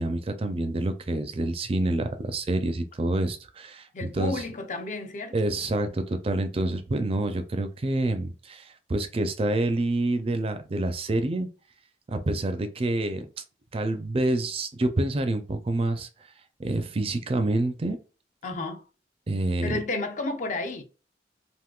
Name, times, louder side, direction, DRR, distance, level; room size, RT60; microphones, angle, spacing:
voice 1, 0.0-3.9 4.1-4.4 5.3-11.5 12.1-13.2 13.7-16.1 16.6-18.0 19.3-19.7, right 2 dB, 30° right, 0.4 m, -27 dB
voice 2, 3.9-5.5 18.4-18.8 19.6-20.8, left 2 dB, 45° left, 0.5 m, -32 dB
3.6 x 2.5 x 2.3 m
head